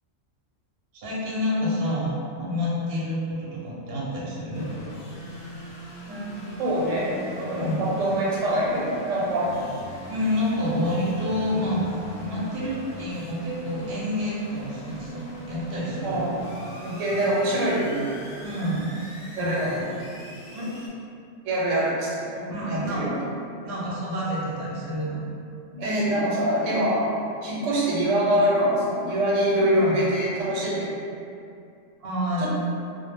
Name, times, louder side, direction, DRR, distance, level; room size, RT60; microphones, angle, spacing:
voice 1, 0.9-2.1 2.4-4.7 7.6-7.8 10.1-11.8 12.2-16.2 18.4-19.7 20.5-20.7 22.5-23.1 23.6-25.2 29.8-30.0 32.0-32.5, left 1 dB, 55° right, -7 dB, 0.7 m, -28 dB
sound 1, 4.5-20.9, equal, 50° left, 0.7 m, -41 dB
voice 2, 6.1-9.6 16.0-16.4 16.8-18.1 19.4-19.9 21.4-23.2 25.7-27.1 27.4-30.9 32.4-32.5, right 1 dB, 85° right, -5 dB, 1.0 m, -24 dB
2.1 x 2.0 x 3.2 m, 2.5 s
omnidirectional pair, 1.3 m